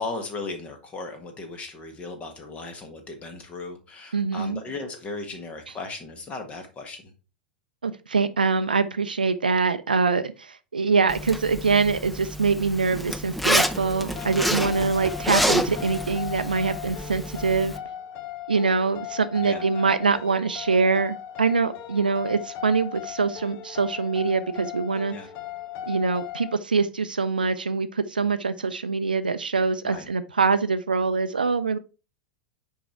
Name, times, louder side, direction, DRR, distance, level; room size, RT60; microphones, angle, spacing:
voice 1, 0.0-7.1 14.0-14.4 19.4-19.6 25.1-25.3 29.8-30.1, left 3 dB, 25° left, 1.6 m, -36 dB
voice 2, 4.1-4.6 7.8-17.7 18.5-25.1 25.9-31.8, right 4 dB, 75° right, 0.4 m, -24 dB
Zipper (clothing), 11.1-17.8, equal, ahead, 0.6 m, -28 dB
sound 1, 13.7-26.6, left 10 dB, 40° left, 0.9 m, -38 dB
6.9 x 4.7 x 4.5 m
figure-of-eight pair, 85°, 5 cm